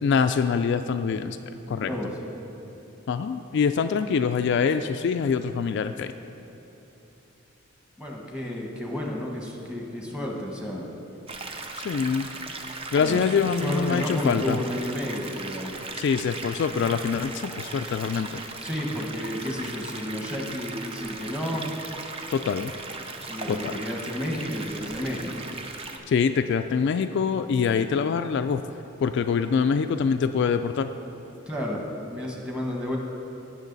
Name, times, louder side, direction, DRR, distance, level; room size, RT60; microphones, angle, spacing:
voice 1, 0.0-1.4 1.7-1.9 3.1-6.1 11.8-12.3 12.9-14.6 16.0-18.4 22.3-22.7 23.5-23.8 26.1-28.6 29.0-30.9, left 6 dB, 55° left, 8 dB, 0.3 m, -24 dB
voice 2, 1.7-2.2 8.0-10.9 13.0-13.2 13.6-15.7 18.6-21.7 23.3-25.4 31.5-33.0, left 1 dB, 5° right, -1 dB, 1.2 m, -31 dB
sound 1, 11.3-26.0, right 3 dB, 30° right, 0.6 m, -38 dB
17.5 x 6.4 x 4.0 m, 3.0 s
head